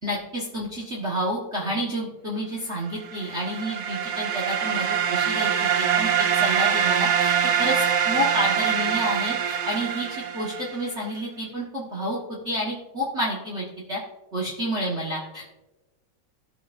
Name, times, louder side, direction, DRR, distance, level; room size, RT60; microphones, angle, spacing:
voice 1, 0.0-7.3 7.6-14.0 14.3-15.5, equal, 35° right, -4 dB, 1.5 m, -29 dB
sound 1, 3.1-10.9, right 8 dB, 70° right, 1.1 m, -24 dB
17.0 x 6.8 x 2.6 m, 1.1 s
omnidirectional pair, 2.3 m